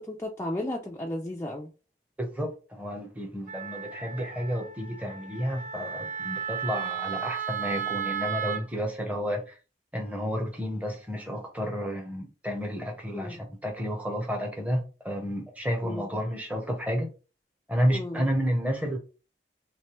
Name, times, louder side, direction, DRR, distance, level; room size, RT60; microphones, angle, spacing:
voice 1, 0.0-1.7 13.1-13.4 15.8-16.0 17.9-18.3, left 1 dB, 15° left, 0.4 m, -34 dB
voice 2, 2.2-9.5 9.9-17.1 17.7-19.0, equal, 10° right, 0.8 m, -31 dB
Wind instrument woodwind instrument, 3.5-8.6, right 8 dB, 45° right, 0.5 m, -34 dB
3.2 x 3.2 x 3.0 m
head